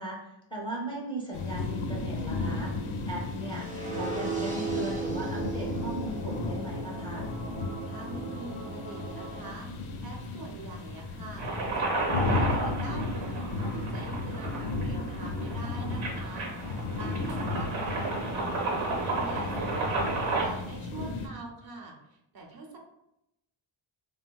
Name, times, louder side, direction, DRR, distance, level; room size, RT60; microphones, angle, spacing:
voice 1, 0.0-2.7 3.1-7.3 17.2-17.7, right 1 dB, 10° left, -4 dB, 0.5 m, -38 dB
sound 1, 1.3-21.3, left 3 dB, 90° left, 0.6 m, -34 dB
sound 2, 3.5-9.5, right 4 dB, 15° right, 0.8 m, -36 dB
voice 2, 7.8-9.7 10.0-18.1 18.4-22.8, right 3 dB, 50° right, 1 dB, 0.6 m, -44 dB
sound 3, 11.4-20.4, right 3 dB, 90° right, 0.8 m, -33 dB
3.4 x 2.2 x 2.2 m, 0.84 s
wide cardioid pair, 115°, 48 cm